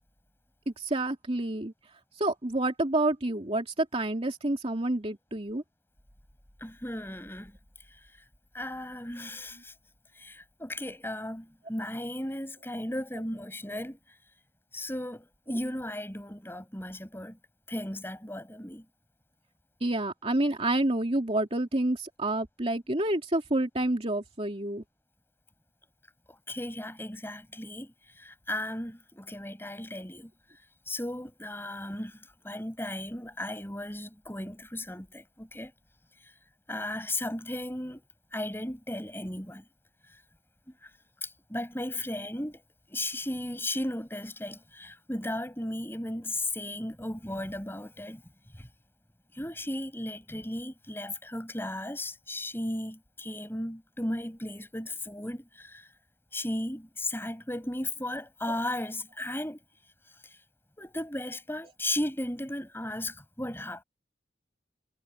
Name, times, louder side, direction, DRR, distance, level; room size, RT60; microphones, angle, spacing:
voice 1, 0.7-1.7 2.2-5.6 19.8-24.8 58.5-58.6, right 1 dB, 35° right, 2.7 m, -28 dB
voice 2, 6.6-7.6 8.5-9.7 10.1-14.2 14.7-17.4 17.7-18.9 26.3-30.3 30.9-32.2 32.4-35.7 36.2-36.3 36.7-38.0 38.3-39.7 40.8-40.9 41.2-42.6 42.9-48.2 48.6-48.7 49.3-55.9 56.3-59.6 60.2-60.4 60.8-63.8, left 1 dB, 10° left, 7.1 m, -35 dB
head